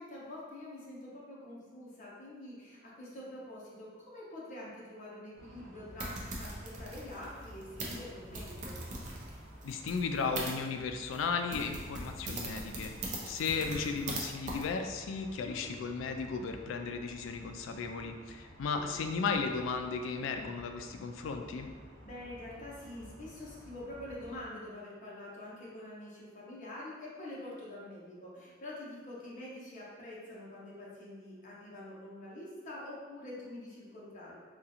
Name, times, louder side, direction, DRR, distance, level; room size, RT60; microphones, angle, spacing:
voice 1, 0.0-8.8 15.4-15.6 18.7-18.9 22.0-34.4, left 1 dB, 40° left, -6 dB, 0.9 m, -46 dB
sound 1, 5.3-24.4, equal, 10° left, 0.8 m, -53 dB
sound 2, 6.0-10.5 11.1-11.2 11.5-14.2 14.5-14.6, right 2 dB, 40° right, 0.5 m, -41 dB
voice 2, 9.6-12.9 13.2-21.7, left 5 dB, 80° left, 5 dB, 0.3 m, -35 dB
3.7 x 2.3 x 2.8 m, 1.5 s
head